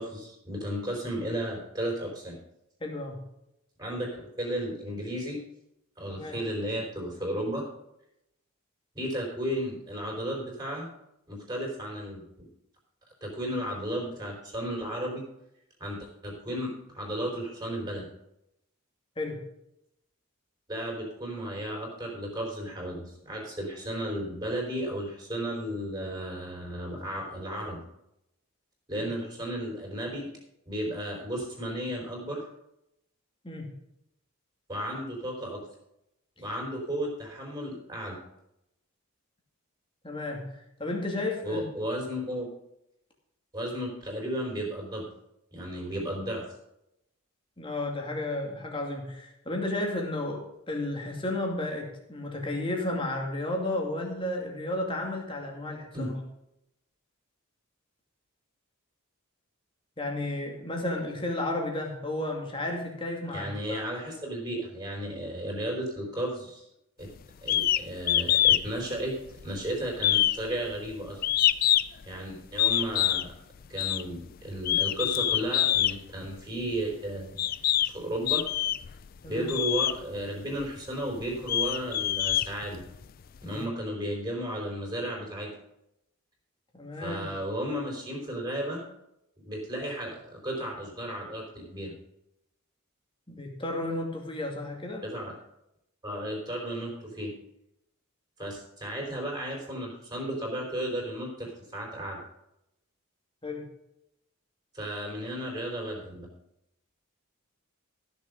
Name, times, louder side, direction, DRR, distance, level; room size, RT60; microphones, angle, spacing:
voice 1, 0.0-2.4 3.8-5.4 6.0-7.6 8.9-10.9 11.3-12.5 13.2-15.2 15.8-18.1 20.7-27.8 28.9-30.3 30.7-32.4 34.7-35.6 36.4-38.2 41.4-42.5 43.5-45.1 45.5-46.4 55.9-56.1 63.3-66.6 67.0-67.1 67.4-69.1 69.4-71.2 72.0-73.3 73.7-77.4 77.9-78.4 79.3-82.8 83.4-85.5 87.0-88.8 89.4-91.9 95.0-95.3 96.0-97.3 98.4-102.2 104.7-106.3, right 1 dB, 20° right, -1 dB, 4.3 m, -34 dB
voice 2, 2.8-3.2 6.1-6.4 19.2-19.4 29.0-29.1 33.4-33.8 40.0-41.6 47.6-56.1 60.0-63.8 79.2-79.5 83.4-83.6 86.8-87.2 93.3-95.1 103.4-103.7, left 1 dB, 25° left, 0 dB, 2.4 m, -33 dB
sound 1, 67.5-67.8 68.1-68.6 69.0-69.6 70.0-72.0 72.6-73.3 73.8-74.0 74.6-75.9 76.8-76.9 77.4-77.9 78.3-78.9 79.5-80.0 80.6-80.7 81.2-83.0, left 12 dB, 40° left, 0.3 m, -25 dB
15.0 x 7.0 x 5.3 m, 0.83 s
head